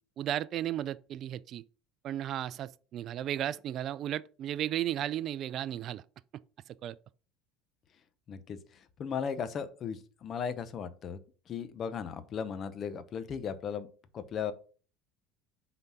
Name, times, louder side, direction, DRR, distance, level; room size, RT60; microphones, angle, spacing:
voice 1, 0.2-1.6 2.0-6.0 6.8-7.0, right 11 dB, 45° right, 0.3 m, -34 dB
voice 2, 8.3-11.2 11.5-13.9 14.1-14.5, left 7 dB, 40° left, 0.8 m, -36 dB
5.6 x 3.9 x 5.9 m
supercardioid pair, 125°, 0 cm